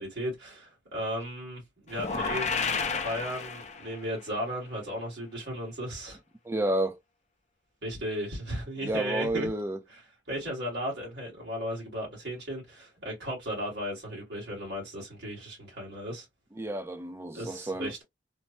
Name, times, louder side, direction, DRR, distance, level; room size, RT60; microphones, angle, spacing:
voice 1, 0.0-6.2 7.8-9.5 9.9-16.2 17.3-18.0, equal, 60° right, 1.8 m, -35 dB
sound 1, 1.9-4.1, left 5 dB, 35° left, 0.5 m, -31 dB
voice 2, 6.5-7.0 8.8-9.8 16.6-17.9, right 1 dB, 15° right, 0.4 m, -30 dB
3.2 x 2.2 x 2.6 m
head